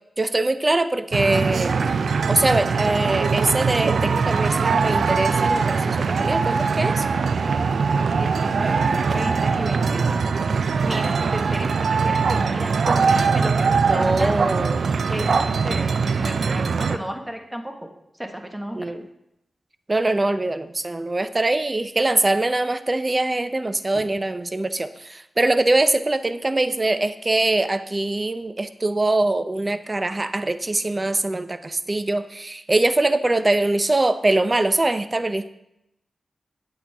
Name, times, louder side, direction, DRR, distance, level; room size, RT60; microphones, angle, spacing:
voice 1, 0.2-1.9 2.3-7.0 13.9-14.8 18.8-19.0 19.9-35.5, right 2 dB, 35° right, 11 dB, 0.6 m, -23 dB
sound 1, 1.1-17.0, right 5 dB, 75° right, 0.4 m, -21 dB
voice 2, 8.1-10.2 10.8-14.4 15.1-17.9 18.1-19.0, equal, 10° right, 4 dB, 1.4 m, -33 dB
8.7 x 8.4 x 3.5 m, 0.83 s
cardioid pair, 50°, 0 cm